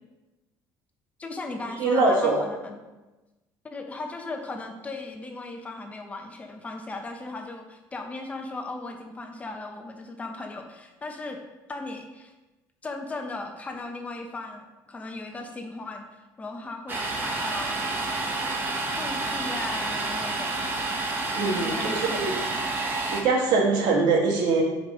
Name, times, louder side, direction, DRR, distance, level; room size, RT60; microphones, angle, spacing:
voice 1, 1.2-2.8 3.6-11.4 11.7-12.3 12.8-16.1 16.4-17.8 19.0-20.6 21.5-22.6, left 2 dB, 20° left, 3 dB, 0.8 m, -37 dB
voice 2, 1.8-2.4 21.3-22.3 23.1-24.6, right 3 dB, 70° right, 0 dB, 1.8 m, -23 dB
Domestic sounds home sounds, 16.9-23.2, right 2 dB, 30° right, 1.1 m, -29 dB
5.1 x 5.1 x 6.2 m, 1.1 s
cardioid pair, 135°, 8 cm